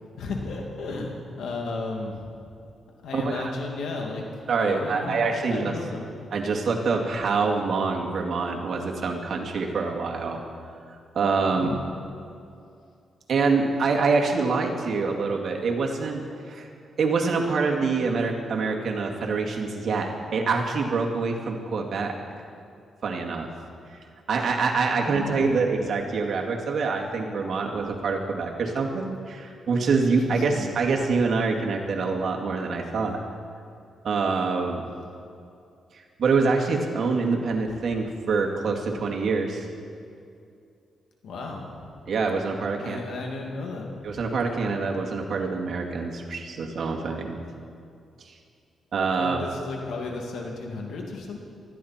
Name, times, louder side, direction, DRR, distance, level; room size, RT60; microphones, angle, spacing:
voice 1, 0.2-2.3 3.0-4.2 4.6-5.2 5.5-6.1 11.5-11.8 25.0-25.6 30.0-30.2 30.5-30.7 41.2-41.8 42.8-44.2 49.2-51.4, left 3 dB, 80° left, 1 dB, 2.4 m, -34 dB
voice 2, 3.1-3.5 4.5-5.7 6.3-10.4 11.1-11.7 13.3-16.7 17.0-22.1 23.0-23.5 23.9-24.0 24.3-33.2 34.0-34.8 36.2-39.7 42.1-43.0 44.0-47.4 48.2-48.3 48.9-49.4, right 4 dB, 60° right, 0 dB, 2.1 m, -25 dB
19.5 x 13.5 x 4.4 m, 2.5 s
cardioid pair, 95°, 0 cm